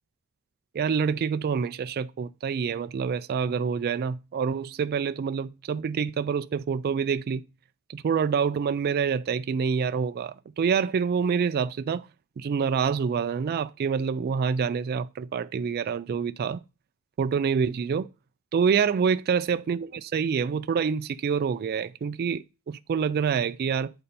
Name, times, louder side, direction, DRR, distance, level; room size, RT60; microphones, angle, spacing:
voice 1, 0.7-7.4 7.9-12.1 12.4-16.6 17.2-18.1 18.5-23.9, right 6 dB, 45° right, 0.3 m, -27 dB
8.7 x 4.2 x 5.3 m
head